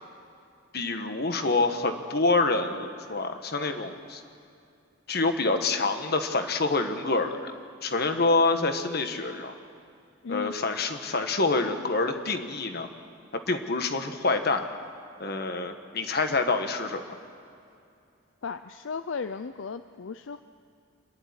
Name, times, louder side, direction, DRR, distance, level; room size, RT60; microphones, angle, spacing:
voice 1, 0.7-4.2 5.1-7.5 7.8-9.5 10.3-12.9 13.5-14.6 15.2-17.0, left 3 dB, 50° left, 7 dB, 1.5 m, -26 dB
voice 2, 10.2-10.6 18.4-20.4, left 5 dB, 70° left, 10 dB, 0.5 m, -35 dB
26.0 x 11.0 x 9.7 m, 2.5 s
head